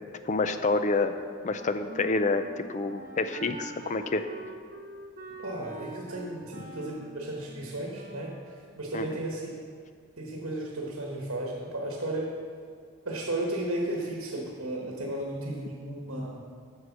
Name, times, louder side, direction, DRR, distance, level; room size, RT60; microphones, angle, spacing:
voice 1, 0.3-4.2 8.9-9.1, left 3 dB, 35° left, 9 dB, 0.4 m, -28 dB
Wind instrument woodwind instrument, 1.4-8.5, right 2 dB, 45° right, 0.8 m, -45 dB
voice 2, 5.4-9.5 10.2-12.3 13.0-16.4, right 1 dB, 70° right, -1 dB, 1.3 m, -34 dB
9.4 x 6.5 x 6.0 m, 2.2 s
head